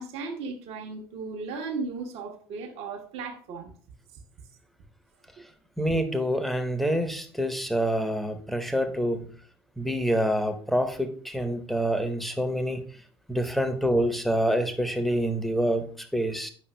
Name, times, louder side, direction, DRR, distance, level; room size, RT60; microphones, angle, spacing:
voice 1, 0.0-3.7, right 4 dB, 55° right, 2 dB, 1.0 m, -36 dB
voice 2, 5.8-9.3 9.8-12.8 13.3-16.5, equal, ahead, 8 dB, 0.9 m, -26 dB
8.3 x 5.5 x 2.2 m, 0.43 s
figure-of-eight pair, 60°, 13 cm